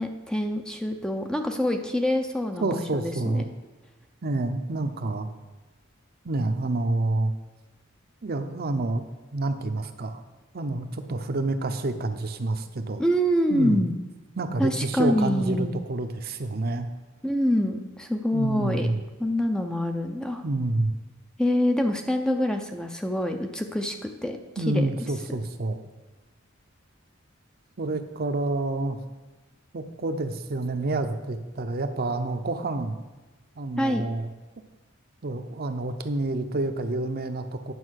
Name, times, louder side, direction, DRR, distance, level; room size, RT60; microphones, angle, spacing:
voice 1, 0.0-3.4 13.0-13.9 14.6-15.8 17.2-18.9 19.2-20.4 21.4-24.4 24.7-24.9 25.3-25.4 33.8-34.1, equal, 5° left, 5 dB, 0.5 m, -26 dB
voice 2, 2.6-3.5 4.2-5.3 6.2-7.3 8.2-9.0 9.3-10.2 10.5-13.0 13.5-13.8 14.4-16.9 18.3-19.0 20.4-20.9 24.6-25.8 27.8-29.0 29.7-33.0 33.6-34.3 35.2-37.7, right 2 dB, 50° right, 7 dB, 0.7 m, -28 dB
9.5 x 5.5 x 6.4 m, 1.2 s
head